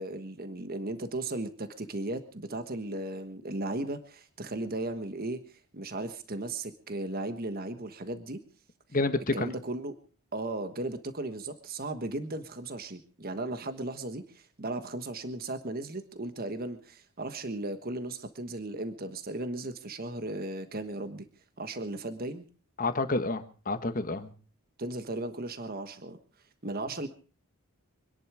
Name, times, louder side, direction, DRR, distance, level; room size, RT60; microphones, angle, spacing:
voice 1, 0.0-5.4 5.7-8.4 9.3-9.9 10.3-21.3 21.6-22.4 24.8-26.2 26.6-27.1, right 2 dB, 40° right, 9 dB, 1.3 m, -36 dB
voice 2, 8.9-9.5 22.8-24.3, left 2 dB, 40° left, 10 dB, 1.4 m, -29 dB
25.5 x 11.0 x 4.9 m, 0.38 s
head